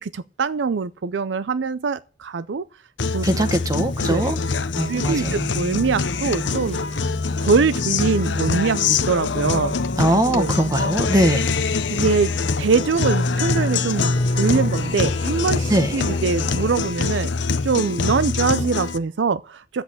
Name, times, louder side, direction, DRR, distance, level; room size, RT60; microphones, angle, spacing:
voice 1, 0.0-2.6 3.1-3.3 4.0-4.3 4.9-6.8 7.4-8.8 9.1-9.7 10.3-10.5 11.9-12.3 12.6-17.3 17.6-19.8, right 5 dB, 75° right, 0.5 m, -23 dB
Guitar, 3.0-19.0, left 4 dB, 80° left, 0.8 m, -24 dB
sound 1, 3.2-16.9, left 2 dB, 35° left, 0.7 m, -34 dB
voice 2, 3.2-4.4 4.7-5.5 10.0-11.5 15.7-15.9, right 1 dB, 20° right, 0.9 m, -21 dB
10.0 x 8.0 x 8.6 m
head